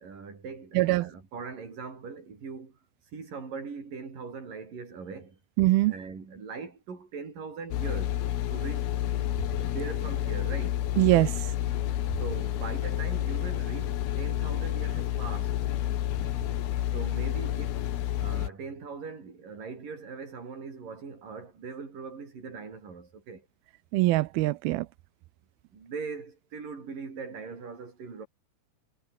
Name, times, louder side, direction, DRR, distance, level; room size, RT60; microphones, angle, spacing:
voice 1, 0.0-2.8 3.1-5.4 5.9-8.2 8.5-8.9 9.4-10.8 12.2-15.6 16.9-17.9 18.2-23.5 25.7-28.3, right 5 dB, 50° right, 7.1 m, -40 dB
voice 2, 0.8-1.1 5.6-5.9 11.0-11.3 23.9-24.9, right 18 dB, 75° right, 2.4 m, -22 dB
sound 1, 7.7-18.5, left 12 dB, 70° left, 3.3 m, -30 dB
omnidirectional pair, 5.0 m